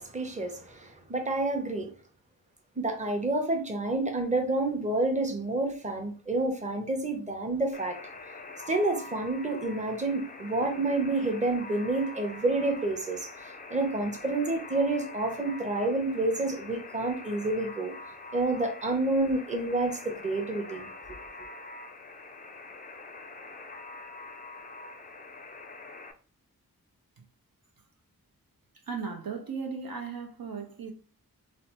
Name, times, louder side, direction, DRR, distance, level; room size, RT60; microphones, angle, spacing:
voice 1, 0.0-1.9 2.8-8.0 8.7-17.9 18.3-20.9, right 2 dB, 20° right, 0.7 m, -29 dB
Alarm, 7.7-26.1, left 3 dB, 25° left, 0.4 m, -45 dB
voice 2, 28.8-30.9, right 5 dB, 70° right, 0.6 m, -36 dB
3.2 x 2.0 x 2.9 m
cardioid pair, 45°, 36 cm